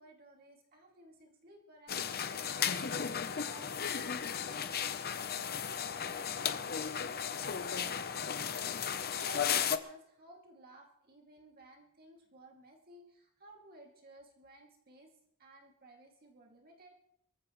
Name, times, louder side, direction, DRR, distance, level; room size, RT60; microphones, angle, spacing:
voice 1, 0.0-8.5 8.9-15.1 15.4-16.9, right 2 dB, 45° right, 0 dB, 2.6 m, -57 dB
sound 1, 1.9-9.8, left 7 dB, 45° left, 0.8 m, -35 dB
24.5 x 15.0 x 3.2 m, 0.76 s
head